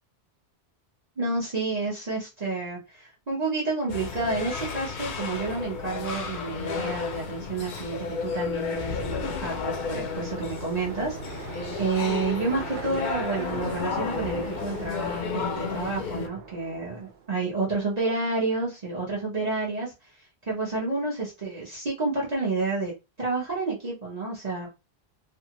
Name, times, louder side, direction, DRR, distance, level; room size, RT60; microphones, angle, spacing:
voice 1, 1.2-19.9 20.5-22.9 23.2-24.7, right 3 dB, 40° right, 1.1 m, -30 dB
sound 1, 3.9-16.3, left 5 dB, 55° left, 0.6 m, -33 dB
sound 2, 8.5-17.4, right 6 dB, 60° right, 0.6 m, -41 dB
2.7 x 2.4 x 2.8 m
omnidirectional pair, 1.1 m